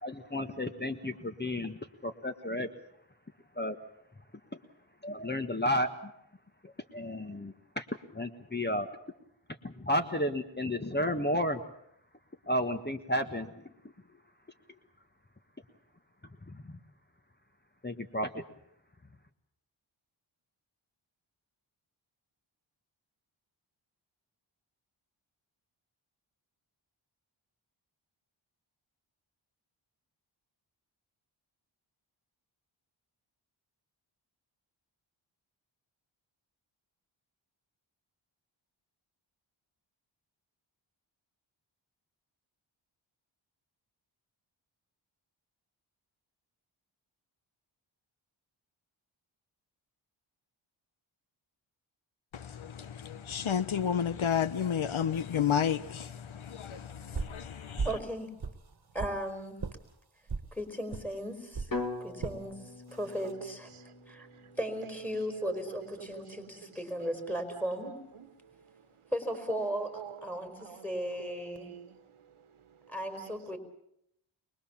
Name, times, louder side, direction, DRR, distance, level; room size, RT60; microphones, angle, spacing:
voice 1, 0.0-2.7 3.6-3.8 5.0-6.1 6.6-7.8 8.1-8.9 9.6-11.6 12.5-13.6 16.5-16.8 17.8-18.4, left 1 dB, 20° left, 1.4 m, -32 dB
voice 2, 52.3-57.9, left 8 dB, 75° left, 1.0 m, -31 dB
sound 1, 57.1-57.4 57.8-58.1 58.4-59.2 59.6-59.8 60.3-60.5 60.9-61.1 61.5-61.7 62.2-62.4 63.0-63.3, right 4 dB, 50° right, 1.6 m, -36 dB
voice 3, 57.8-58.3 58.9-59.7 60.5-61.7 62.0-62.6 62.9-63.7 64.1-64.3 64.6-67.9 69.1-71.7 72.9-73.6, equal, 5° left, 4.8 m, -36 dB
sound 2, 61.7-65.8, left 3 dB, 40° left, 2.2 m, -42 dB
voice 4, 62.9-73.6, right 7 dB, 90° right, 1.4 m, -48 dB
23.5 x 21.0 x 7.2 m
cardioid pair, 55°, 49 cm